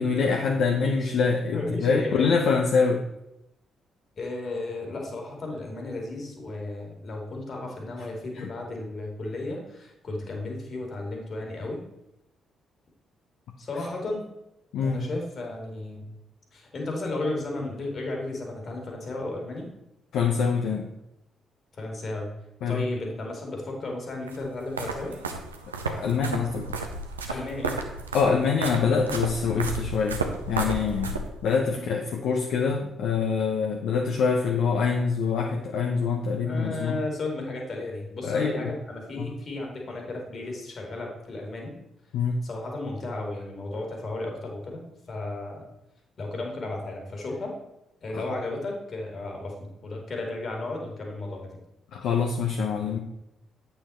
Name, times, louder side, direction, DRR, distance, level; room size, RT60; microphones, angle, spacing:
voice 1, 0.0-3.0 8.4-8.5 14.7-15.0 20.1-20.9 22.6-22.8 25.9-26.7 27.3-27.4 28.1-30.2 30.5-31.1 31.4-37.0 38.2-38.7 39.2-39.3 42.1-42.4 51.9-53.0, left 5 dB, 65° left, 2 dB, 0.8 m, -25 dB
voice 2, 1.5-2.3 4.2-11.8 13.6-14.2 14.8-16.1 16.5-19.7 21.7-22.3 22.7-25.2 27.3-27.8 31.7-32.0 36.4-41.7 42.4-45.7 46.2-47.6 48.0-51.5, left 2 dB, 50° left, 1 dB, 2.4 m, -34 dB
sound 1, 24.3-31.6, right 3 dB, 90° right, 0.6 m, -33 dB
8.4 x 5.7 x 4.3 m, 0.89 s
figure-of-eight pair, 40°, 0 cm